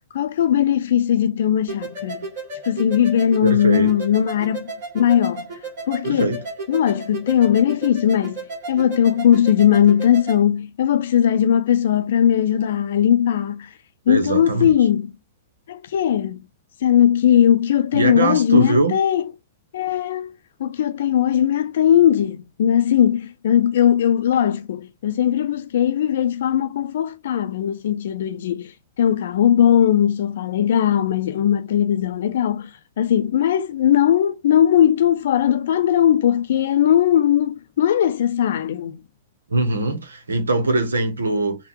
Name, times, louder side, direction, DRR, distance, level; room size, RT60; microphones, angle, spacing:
voice 1, 0.1-2.3 2.6-5.4 5.9-6.3 6.7-8.4 8.7-13.7 14.1-15.1 15.7-16.4 16.8-19.2 19.7-20.3 20.6-28.7 29.0-32.7 33.0-39.0, left 10 dB, 60° left, 0.5 m, -19 dB
sound 1, 1.7-10.4, right 3 dB, 50° right, 1.8 m, -34 dB
voice 2, 3.4-3.9 6.0-6.4 14.1-14.7 17.9-18.9 39.5-41.6, right 2 dB, 80° right, 1.1 m, -21 dB
3.6 x 2.4 x 2.9 m
figure-of-eight pair, 105°, 0 cm